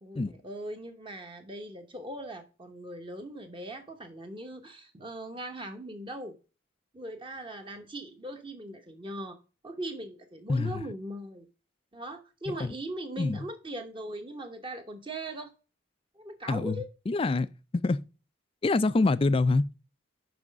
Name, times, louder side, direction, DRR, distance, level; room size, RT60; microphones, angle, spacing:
voice 1, 0.0-6.3 6.9-9.4 9.6-11.5 11.9-15.5 16.2-16.9, right 1 dB, 25° right, 0.9 m, -40 dB
voice 2, 10.5-10.8 12.5-12.8 13.2-13.4 16.5-17.5 17.7-18.0 18.6-19.6, left 3 dB, 30° left, 0.3 m, -26 dB
6.1 x 5.5 x 5.1 m
head